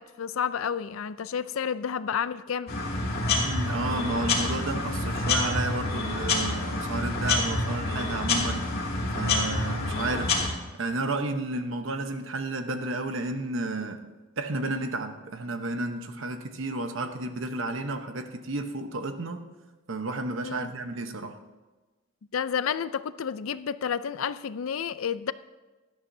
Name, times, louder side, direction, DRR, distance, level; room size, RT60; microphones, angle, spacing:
voice 1, 0.0-2.7 20.4-20.7 22.3-25.3, left 7 dB, 90° left, 0.5 m, -30 dB
sound 1, 2.7-10.5, left 2 dB, 50° left, 2.5 m, -27 dB
voice 2, 3.3-8.7 9.1-10.3 10.8-14.0 14.4-19.5 19.9-21.4, right 2 dB, 70° right, 1.0 m, -32 dB
17.5 x 12.0 x 2.7 m
head